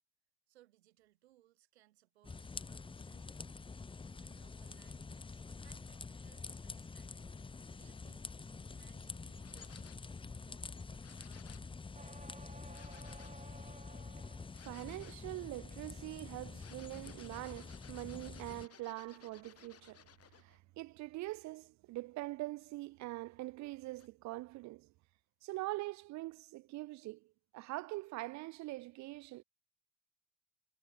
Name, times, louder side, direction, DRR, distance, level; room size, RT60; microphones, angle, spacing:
voice 1, 0.5-3.5 4.2-7.3 7.7-8.2 8.7-11.8, right 15 dB, 85° right, 3.2 m, -69 dB
sound 1, 2.2-18.7, left 4 dB, 15° left, 0.7 m, -47 dB
sound 2, 9.4-10.1 11.0-11.7 12.7-13.4 14.5-15.3 16.5-20.6 23.9-24.1, left 9 dB, 50° left, 2.4 m, -60 dB
sound 3, 11.9-14.7 15.1-15.6, right 3 dB, 20° right, 4.0 m, -56 dB
voice 2, 14.6-20.0 20.4-24.9 25.4-29.4, right 19 dB, 60° right, 0.7 m, -43 dB
hypercardioid pair, 50°, 32 cm